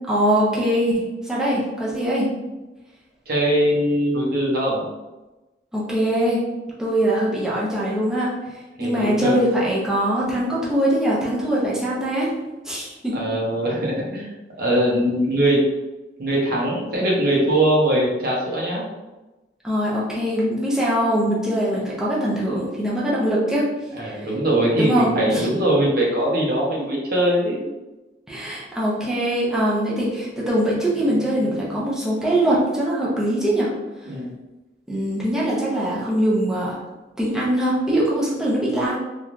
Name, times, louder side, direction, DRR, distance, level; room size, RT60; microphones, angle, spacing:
voice 1, 0.1-2.3 5.7-6.4 6.8-8.3 8.8-12.3 12.6-13.1 19.6-23.7 24.0-24.3 24.8-25.5 28.3-33.7 34.9-36.8 37.2-39.0, right 1 dB, 5° right, -7 dB, 0.5 m, -22 dB
voice 2, 3.3-4.8 8.8-9.3 13.1-14.3 14.6-15.6 16.2-18.8 23.9-27.6 34.1-34.3, right 1 dB, 60° right, -3 dB, 0.8 m, -21 dB
3.1 x 2.3 x 2.4 m, 1.1 s
head